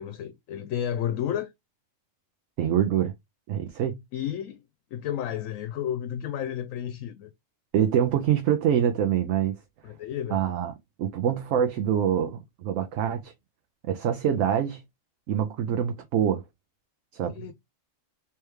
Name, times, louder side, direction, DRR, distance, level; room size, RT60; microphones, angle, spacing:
voice 1, 0.0-1.5 4.1-4.6 4.9-7.3 9.8-10.4 17.2-17.5, left 10 dB, 80° left, 1.0 m, -32 dB
voice 2, 2.6-3.1 3.5-4.0 7.7-9.6 10.3-10.7 11.0-13.3 13.9-14.8 15.3-16.4 17.1-17.5, right 9 dB, 75° right, 1.0 m, -25 dB
3.3 x 3.3 x 3.1 m
omnidirectional pair, 1.4 m